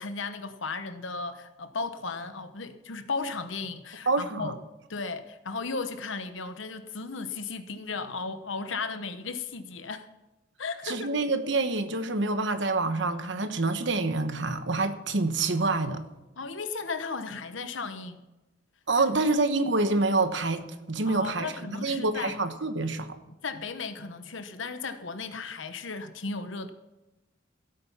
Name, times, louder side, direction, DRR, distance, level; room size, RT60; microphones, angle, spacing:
voice 1, 0.0-4.5 4.9-10.1 10.6-11.1 16.4-18.2 19.3-19.4 21.1-22.4 23.3-26.7, left 4 dB, 75° left, 1.0 m, -35 dB
voice 2, 4.1-4.5 10.8-16.0 18.9-21.5 21.8-23.1, right 3 dB, 65° right, 1.2 m, -27 dB
16.0 x 8.8 x 5.7 m
head